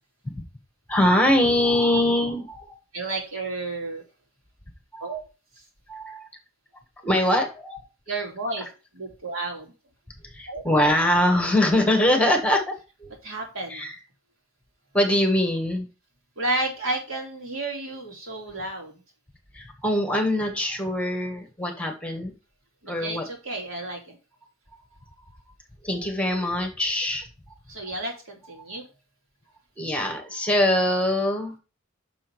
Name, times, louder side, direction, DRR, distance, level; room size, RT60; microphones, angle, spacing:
voice 1, 0.9-2.8 4.9-5.2 5.9-6.3 7.0-7.8 8.6-8.7 10.3-12.7 13.0-13.1 13.7-14.0 14.9-15.9 19.5-22.3 22.9-23.3 25.8-27.3 27.8-27.9 28.5-28.8 29.8-31.5, left 1 dB, 5° left, 4 dB, 1.5 m, -23 dB
voice 2, 2.9-4.0 5.0-5.2 8.1-8.7 8.9-9.7 10.5-10.6 13.2-13.9 16.4-19.0 22.8-24.2 27.7-28.8, right 2 dB, 85° right, 0 dB, 2.8 m, -31 dB
6.2 x 6.1 x 4.6 m, 0.32 s
head